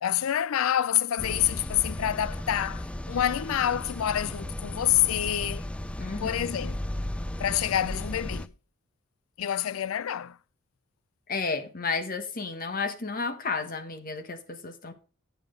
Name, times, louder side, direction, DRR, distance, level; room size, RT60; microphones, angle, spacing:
voice 1, 0.0-5.6 6.2-6.8 7.4-8.5 9.4-10.4, left 11 dB, 80° left, 0.4 m, -27 dB
sound 1, 1.2-8.5, left 1 dB, 5° left, 0.4 m, -35 dB
voice 2, 6.0-6.5 11.3-14.9, left 4 dB, 45° left, 1.2 m, -32 dB
9.1 x 7.4 x 3.7 m
head